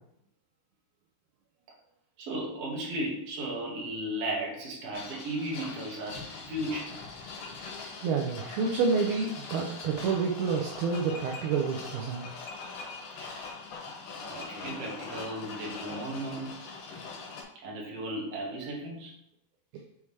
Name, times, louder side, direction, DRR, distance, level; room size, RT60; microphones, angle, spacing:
voice 1, 2.2-6.2 6.5-6.9 13.2-13.5 14.2-16.6 17.6-19.1, right 1 dB, 50° right, -4 dB, 2.1 m, -35 dB
sound 1, 4.9-17.4, left 4 dB, 80° left, 3.8 m, -42 dB
voice 2, 8.0-12.2, right 5 dB, 80° right, 0 dB, 2.3 m, -28 dB
7.0 x 4.9 x 3.2 m, 0.76 s
omnidirectional pair, 4.8 m